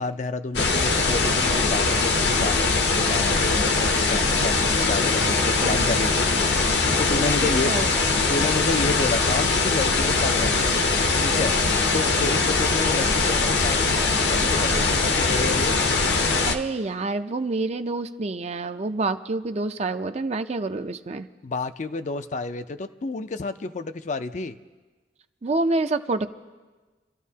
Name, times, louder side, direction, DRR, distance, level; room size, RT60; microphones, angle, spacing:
voice 1, 0.0-6.3 7.0-7.7 8.3-10.7 11.2-11.5 11.9-13.8 14.3-15.7 21.4-24.6, left 3 dB, 40° left, 10 dB, 0.5 m, -30 dB
sound 1, 0.5-16.5, left 3 dB, 65° left, 0.8 m, -22 dB
voice 2, 5.3-5.8 7.4-7.9 16.4-21.3 25.4-26.3, right 3 dB, 35° right, 9 dB, 0.5 m, -27 dB
28.5 x 13.5 x 2.8 m, 1.3 s
head